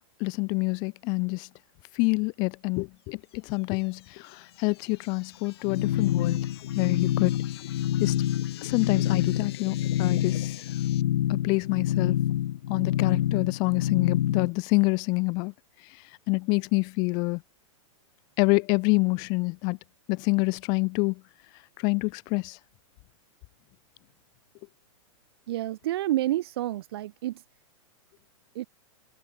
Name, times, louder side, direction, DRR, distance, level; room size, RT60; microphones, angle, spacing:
voice 1, 0.2-1.5 1.9-6.4 6.7-7.3 8.0-8.1 8.6-10.6 11.3-12.2 12.7-15.5 16.3-17.4 18.4-19.8 20.1-21.2 21.8-22.6, left 30 dB, 25° left, 0.9 m, -27 dB
sound 1, 3.3-11.0, left 14 dB, 50° left, 2.0 m, -47 dB
sound 2, 5.6-14.5, left 12 dB, 85° left, 0.6 m, -27 dB
voice 2, 25.5-27.4 28.5-28.7, right 14 dB, 45° right, 1.0 m, -29 dB
supercardioid pair, 175°, 17 cm